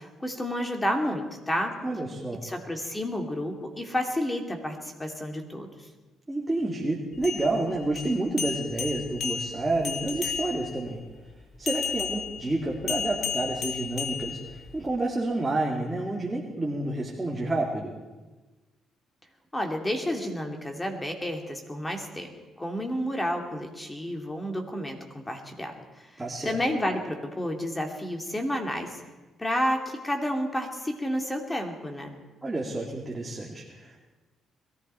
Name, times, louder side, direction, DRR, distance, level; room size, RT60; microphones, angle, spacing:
voice 1, 0.0-1.7 2.4-5.7 19.5-22.3 22.6-26.1 26.4-29.0 29.4-32.1, equal, 15° left, 3 dB, 2.6 m, -30 dB
voice 2, 1.8-2.5 6.3-11.0 11.6-17.9 26.2-26.6 32.4-34.1, right 2 dB, 15° right, -3 dB, 2.3 m, -29 dB
sound 1, 7.1-10.8 11.7-14.8, left 6 dB, 65° left, 2.0 m, -33 dB
21.5 x 14.5 x 4.5 m, 1.2 s
cardioid pair, 90°, 0 cm